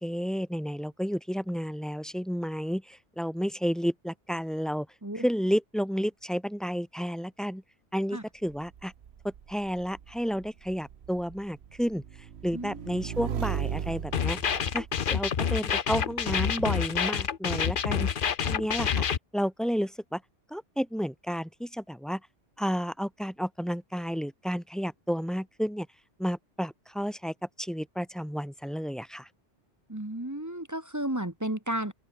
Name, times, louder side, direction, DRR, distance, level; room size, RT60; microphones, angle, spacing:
voice 1, 0.0-4.9 5.1-7.6 7.9-8.9 9.2-12.0 12.4-14.4 14.7-19.1 19.3-20.2 20.5-22.2 22.6-25.9 26.2-29.3, equal, ahead, 3.9 m, -31 dB
Motorcycle / Engine, 8.5-15.6, right 8 dB, 70° right, 1.2 m, -38 dB
sound 1, 14.1-19.2, left 7 dB, 50° left, 1.0 m, -28 dB
voice 2, 29.9-31.9, right 1 dB, 15° right, 1.3 m, -33 dB
open air
omnidirectional pair, 1.2 m